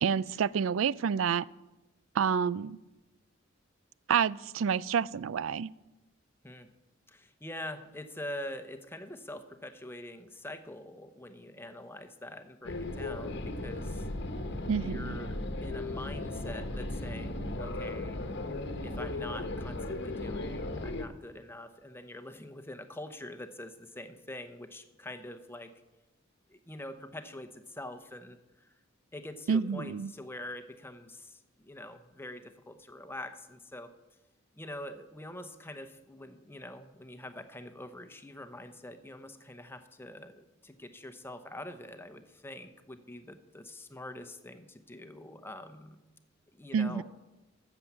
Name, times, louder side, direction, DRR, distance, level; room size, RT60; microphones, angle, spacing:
voice 1, 0.0-1.5 2.1-2.8 4.1-5.7 14.7-15.2 29.5-30.1 46.7-47.0, right 7 dB, 90° right, 0.4 m, -28 dB
voice 2, 7.1-14.1 14.8-18.2 18.8-25.7 26.5-28.7 29.1-33.9 34.6-46.0 46.5-47.0, left 1 dB, 10° left, 0.9 m, -45 dB
sound 1, 12.6-21.1, left 2 dB, 60° left, 1.1 m, -36 dB
14.0 x 7.0 x 7.3 m
head